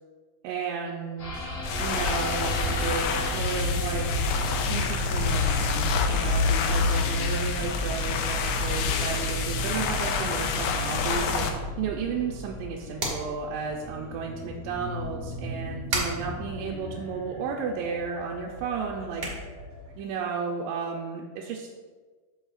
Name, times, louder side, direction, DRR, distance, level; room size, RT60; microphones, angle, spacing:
voice 1, 0.4-4.1 4.7-19.2 20.0-21.7, right 5 dB, 85° right, -2 dB, 2.8 m, -33 dB
sound 1, 1.2-19.9, left 2 dB, 45° left, 2.0 m, -31 dB
sound 2, 1.6-11.5, left 6 dB, 80° left, 2.4 m, -29 dB
sound 3, 4.2-20.2, right 2 dB, 65° right, 1.3 m, -41 dB
13.5 x 4.8 x 2.4 m, 1.5 s
omnidirectional pair, 5.1 m